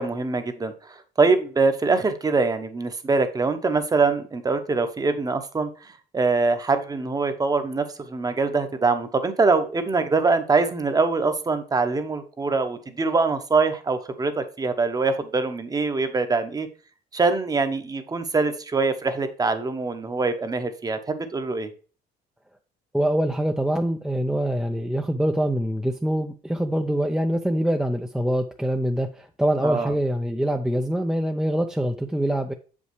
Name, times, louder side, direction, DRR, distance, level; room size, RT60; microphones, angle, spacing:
voice 1, 0.0-5.7 6.1-16.7 17.1-21.7 29.6-29.9, right 4 dB, 20° right, 9 dB, 0.9 m, -23 dB
voice 2, 22.9-32.5, right 1 dB, 5° right, 4 dB, 0.5 m, -24 dB
7.0 x 5.3 x 3.2 m, 0.38 s
cardioid pair, 110°, 17 cm